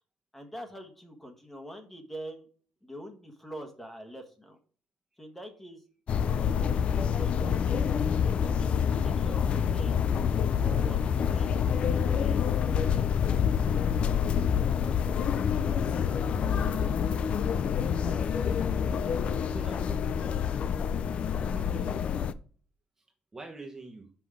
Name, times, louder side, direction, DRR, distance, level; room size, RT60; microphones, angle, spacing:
voice 1, 0.3-2.4 2.8-4.6 5.2-5.8 6.5-7.6 8.4-10.1 10.6-13.1, right 1 dB, 10° left, 5 dB, 1.3 m, -45 dB
sound 1, 6.1-22.3, left 7 dB, 50° left, 0.4 m, -27 dB
voice 2, 17.9-18.2 19.4-20.2 21.6-22.2 23.3-24.1, right 3 dB, 20° right, 2 dB, 1.1 m, -46 dB
5.9 x 5.1 x 4.8 m, 0.42 s
cardioid pair, 125°, 3 cm